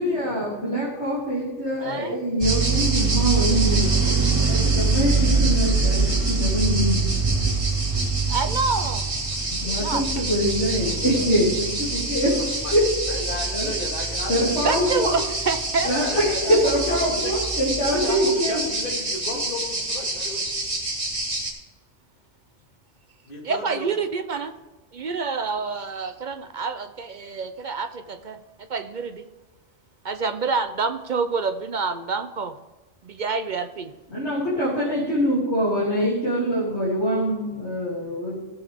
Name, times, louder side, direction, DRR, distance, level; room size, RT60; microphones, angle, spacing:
voice 1, 0.0-7.2 9.5-12.9 13.5-13.8 14.3-15.2 15.8-18.6 34.1-38.4, equal, 60° left, -8 dB, 3.2 m, -24 dB
voice 2, 1.8-2.2 8.3-9.0 9.6-10.0 14.6-15.9 23.4-24.5 24.9-28.4 28.7-29.3 30.0-32.5 33.0-33.9, right 4 dB, 55° right, 9 dB, 0.6 m, -27 dB
sound 1, 2.4-21.5, right 3 dB, 25° right, 1.8 m, -24 dB
voice 3, 13.1-15.0 15.9-17.4 17.9-20.5 23.2-23.9, left 2 dB, 45° left, -2 dB, 2.3 m, -34 dB
16.5 x 7.1 x 3.5 m, 1.2 s
omnidirectional pair, 1.2 m